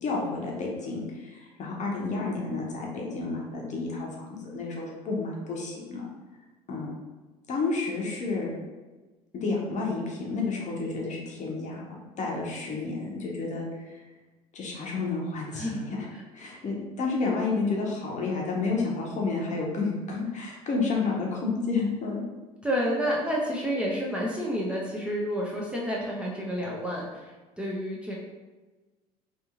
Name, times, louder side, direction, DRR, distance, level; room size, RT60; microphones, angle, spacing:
voice 1, 0.0-6.1 6.7-6.9 7.5-8.5 9.3-11.9 12.2-14.0 14.5-16.1 16.3-22.2, left 3 dB, 35° left, -2 dB, 0.8 m, -30 dB
voice 2, 22.6-28.2, equal, 5° right, -4 dB, 0.5 m, -30 dB
2.7 x 2.6 x 2.4 m, 1.2 s
figure-of-eight pair, 65°, 20 cm